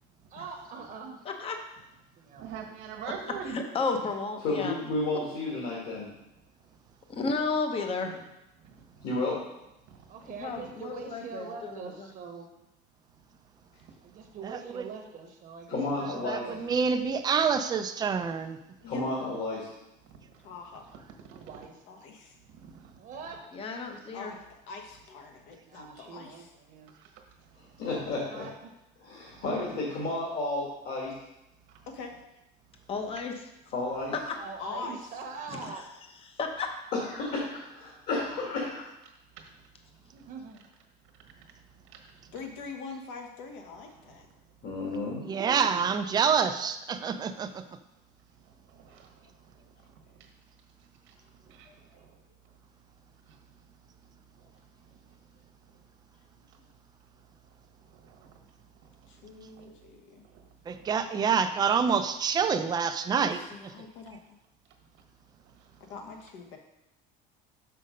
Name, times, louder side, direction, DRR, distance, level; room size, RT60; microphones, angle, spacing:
voice 1, 0.3-1.3 2.2-2.5 10.1-12.5 14.0-16.9 19.1-19.3 21.3-22.0 23.0-23.5 25.6-26.9 28.2-28.7 34.4-35.9 40.1-40.7 45.2-45.9, right 5 dB, 40° right, 3 dB, 1.0 m, -43 dB
voice 2, 1.2-1.6 3.5-4.8 7.1-8.3 10.4-12.1 23.5-24.3 29.4-29.6 32.9-33.5 34.3-34.4 35.5-35.7 36.3-36.7, left 4 dB, 30° left, 4 dB, 0.8 m, -33 dB
voice 3, 2.4-3.6 8.6-9.1 9.9-10.0 21.3-21.5 22.6-22.7 48.8-49.1 51.5-51.7 58.0-58.2 59.6-59.7, right 7 dB, 70° right, 4 dB, 1.4 m, -42 dB
voice 4, 4.4-6.1 9.0-9.5 15.7-16.5 18.8-19.7 27.6-28.5 29.0-31.2 33.7-34.1 36.9-38.9 44.6-45.3, left 2 dB, 50° left, -5 dB, 2.1 m, -32 dB
voice 5, 14.4-14.8 16.2-18.6 45.2-47.6 60.7-63.7, right 6 dB, 20° right, 8 dB, 0.4 m, -27 dB
voice 6, 20.4-20.9 21.9-22.4 24.1-26.5 31.9-32.2 34.6-35.1 42.3-44.3 48.9-49.0 49.2-49.3 49.8-49.9 51.2-51.3 51.6-52.0 59.1-60.2 63.2-64.2 65.8-66.6, left 4 dB, 65° left, 4 dB, 1.2 m, -44 dB
6.3 x 5.6 x 5.2 m, 0.90 s
cardioid pair, 145°, 20 cm